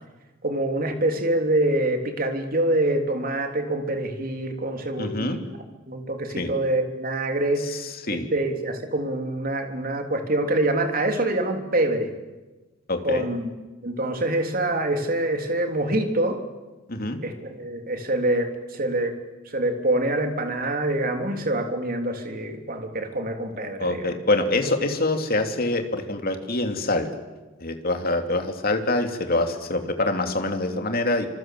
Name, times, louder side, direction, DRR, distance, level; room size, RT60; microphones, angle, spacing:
voice 1, 0.4-5.4 5.9-7.7 8.1-12.1 13.0-13.5 13.8-16.4 17.2-19.1 19.4-24.1, right 1 dB, 45° right, 5 dB, 3.3 m, -25 dB
voice 2, 5.0-5.4 6.4-6.5 7.7-7.8 8.1-8.3 12.9-13.2 16.9-17.2 23.8-27.1 27.6-31.3, left 2 dB, 45° left, 5 dB, 2.9 m, -25 dB
26.5 x 26.0 x 7.8 m, 1.2 s
head